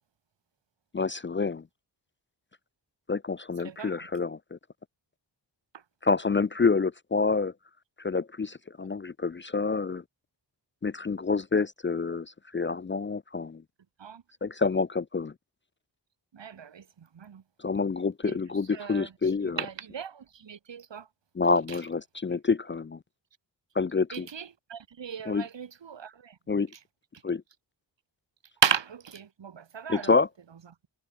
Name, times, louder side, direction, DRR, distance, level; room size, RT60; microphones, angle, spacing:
voice 1, 0.9-1.6 3.1-4.6 6.0-7.5 8.0-10.0 10.8-13.6 14.4-15.3 17.6-19.6 21.4-23.0 23.8-24.3 25.3-25.4 26.5-26.7 27.2-27.4 29.9-30.3, left 4 dB, 25° left, 0.5 m, -27 dB
voice 2, 3.6-4.1 14.0-14.2 16.3-17.4 18.2-18.4 18.7-21.1 21.7-21.8 24.1-26.4 28.6-30.2, right 7 dB, 75° right, 4.4 m, -34 dB
wide cardioid pair, 165°, 44 cm